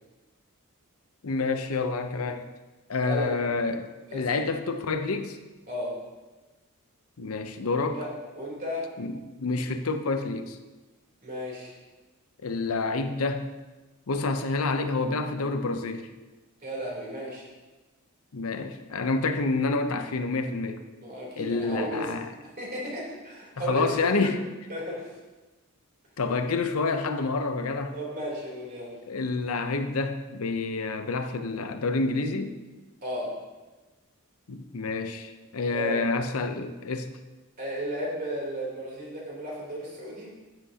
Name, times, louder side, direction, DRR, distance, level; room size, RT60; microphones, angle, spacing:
voice 1, 1.2-2.5 2.9-5.4 7.2-8.0 9.0-10.6 12.4-13.5 14.1-16.1 18.3-20.8 21.4-22.3 23.6-24.4 26.2-28.0 29.1-32.6 34.5-37.1, left 3 dB, 80° left, 7 dB, 0.7 m, -28 dB
voice 2, 7.7-8.1 8.4-8.9 11.2-11.7 16.6-17.5 21.0-22.1 22.6-24.3 24.7-25.1 27.9-28.9 33.0-33.3 35.7-36.0 37.6-40.3, equal, 45° right, -4 dB, 3.4 m, -34 dB
13.0 x 7.7 x 2.9 m, 1.2 s
head